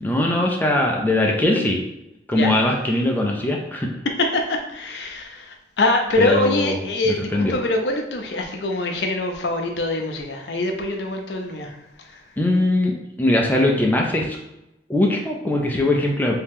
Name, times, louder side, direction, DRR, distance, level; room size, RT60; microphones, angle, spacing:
voice 1, 0.0-1.8 2.3-3.9 6.2-6.7 7.3-7.6 12.4-14.4 14.9-16.3, left 1 dB, 10° left, 0 dB, 0.4 m, -20 dB
voice 2, 2.3-2.6 4.0-12.3, left 2 dB, 80° left, 3 dB, 0.6 m, -24 dB
2.9 x 2.7 x 3.6 m, 0.89 s
head